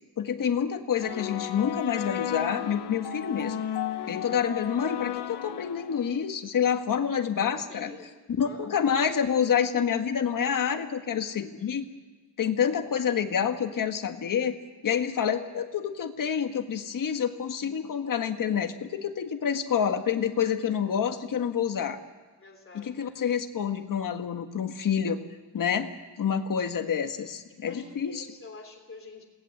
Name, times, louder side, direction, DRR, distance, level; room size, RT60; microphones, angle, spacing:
voice 1, 0.2-3.6 4.1-7.9 8.4-11.9 12.4-14.6 14.8-22.0 22.8-25.2 25.5-25.9 26.2-28.3, left 8 dB, 55° left, 6 dB, 1.7 m, -28 dB
sound 1, 1.0-6.2, left 10 dB, 80° left, 1.3 m, -34 dB
voice 2, 7.6-8.1 8.4-8.8 22.4-23.2 27.5-29.3, left 3 dB, 30° left, 4 dB, 3.3 m, -47 dB
27.5 x 19.0 x 7.9 m, 1.4 s
wide cardioid pair, 175°, 40 cm